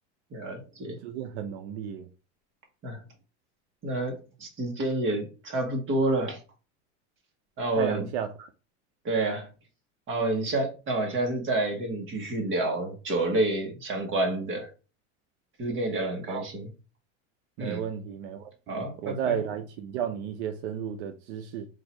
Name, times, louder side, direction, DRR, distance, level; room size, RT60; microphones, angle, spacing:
voice 1, 0.3-1.0 2.8-3.0 3.8-6.4 7.6-8.1 9.0-9.5 10.1-14.7 15.6-16.7 17.6-17.8 18.7-19.4, right 2 dB, 35° right, 1.5 m, -29 dB
voice 2, 0.9-2.1 7.8-8.5 16.3-16.4 17.6-21.7, right 9 dB, 75° right, 0.6 m, -33 dB
3.8 x 2.7 x 4.4 m
supercardioid pair, 135°, 35 cm